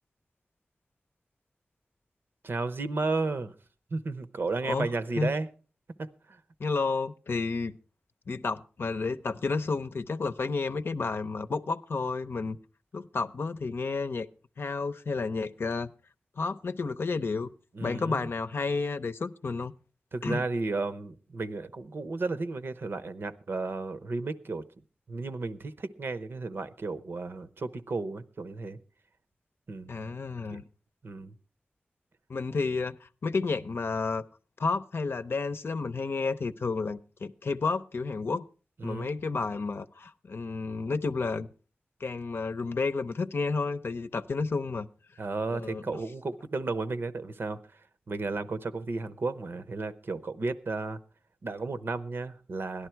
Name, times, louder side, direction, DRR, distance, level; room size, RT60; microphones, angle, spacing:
voice 1, 2.4-3.5 3.9-5.5 6.0-6.4 17.7-18.3 20.1-24.6 25.1-28.8 29.7-30.1 30.5-30.6 31.0-31.3 38.8-39.1 45.2-51.0 51.4-52.9, right 3 dB, 75° right, 0.8 m, -33 dB
voice 2, 6.6-7.7 8.3-12.6 12.9-14.3 14.6-15.9 16.4-17.5 17.8-19.7 20.2-20.4 29.9-30.6 32.3-34.2 34.6-38.4 38.8-41.5 42.0-44.9 45.5-45.8, left 4 dB, 80° left, 0.7 m, -31 dB
17.5 x 11.5 x 4.5 m
wide cardioid pair, 90°, 4 cm